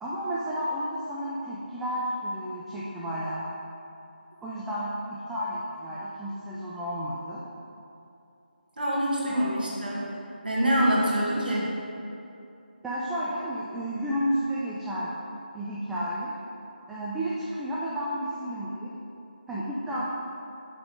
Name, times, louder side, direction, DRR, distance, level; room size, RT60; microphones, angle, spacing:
voice 1, 0.0-3.5 4.4-7.4 9.3-9.5 12.8-15.1 15.5-16.3 16.9-18.9 19.5-20.1, equal, 5° right, -8 dB, 0.4 m, -32 dB
voice 2, 8.8-10.0 10.4-11.7, equal, 65° right, -5 dB, 1.8 m, -25 dB
6.7 x 6.0 x 5.0 m, 2.7 s
figure-of-eight pair, 155°, 5 cm